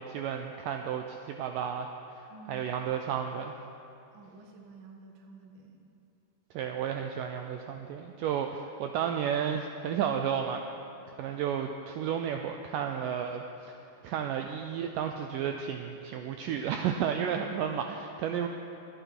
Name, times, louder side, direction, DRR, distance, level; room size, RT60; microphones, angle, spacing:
voice 1, 0.0-1.9 2.2-3.5 6.5-10.6 11.2-13.8 14.0-18.5, right 8 dB, 80° right, 5 dB, 2.0 m, -32 dB
voice 2, 2.3-2.7 4.1-5.9 17.4-17.5, right 3 dB, 60° right, 2 dB, 1.2 m, -51 dB
26.0 x 9.0 x 4.5 m, 2.7 s
omnidirectional pair, 4.4 m